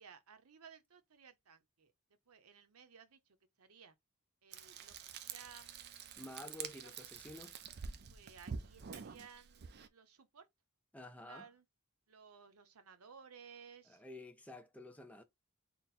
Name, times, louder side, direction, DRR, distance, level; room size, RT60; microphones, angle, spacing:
voice 1, 0.0-1.9 2.3-3.2 3.6-3.9 4.4-4.9 5.2-6.2 6.7-6.9 8.1-10.4 11.2-11.6 12.1-14.0, right 6 dB, 85° right, 0.7 m, -58 dB
Frying (food), 4.5-9.9, right 6 dB, 50° right, 0.4 m, -48 dB
voice 2, 6.2-7.6 10.9-11.5 13.8-15.2, left 1 dB, 5° left, 0.4 m, -51 dB
4.0 x 2.0 x 4.1 m
head